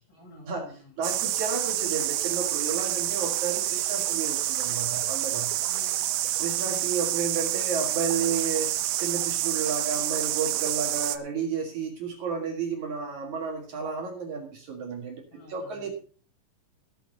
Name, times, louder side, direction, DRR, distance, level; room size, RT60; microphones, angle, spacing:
voice 1, 0.1-1.0 5.7-6.1 15.3-15.9, left 1 dB, 30° left, -4 dB, 7.6 m, -50 dB
voice 2, 1.0-5.5 6.4-15.2 15.5-15.9, right 5 dB, 60° right, 1 dB, 3.1 m, -32 dB
sound 1, 1.0-11.2, right 14 dB, 80° right, 2.4 m, -28 dB
15.0 x 9.9 x 4.1 m, 0.42 s
omnidirectional pair, 4.0 m